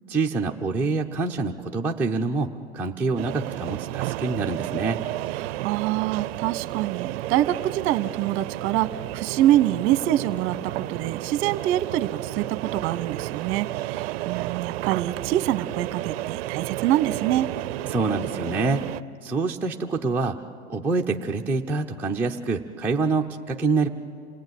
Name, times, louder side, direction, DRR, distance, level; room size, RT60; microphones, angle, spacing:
voice 1, 0.1-5.0 17.9-18.9 19.2-20.4 20.7-23.9, right 3 dB, 5° right, -1 dB, 0.6 m, -26 dB
sound 1, 3.2-19.0, right 17 dB, 60° right, 0.5 m, -32 dB
voice 2, 5.4-17.5, right 13 dB, 35° right, 14 dB, 1.1 m, -25 dB
27.5 x 17.0 x 9.3 m, 2.4 s
hypercardioid pair, 130°, 35 cm